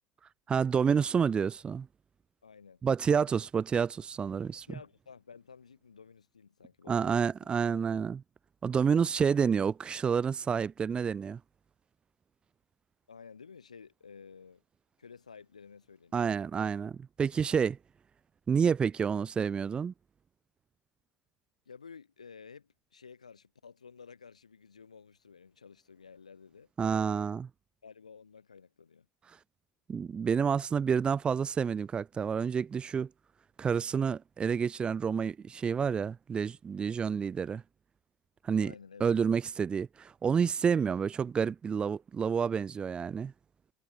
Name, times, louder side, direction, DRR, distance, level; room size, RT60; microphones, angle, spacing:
voice 1, 0.5-1.9 2.8-4.7 6.9-8.2 8.6-11.4 16.1-17.8 18.5-19.9 26.8-27.5 29.9-33.1 33.6-37.6 38.4-38.7 39.0-43.3, right 6 dB, 25° right, 0.7 m, -29 dB
voice 2, 2.4-2.8 4.7-7.2 13.1-14.6 15.0-16.3 21.7-26.7 27.8-29.1 38.6-39.2, left 6 dB, 80° left, 3.4 m, -52 dB
figure-of-eight pair, 65°, 4 cm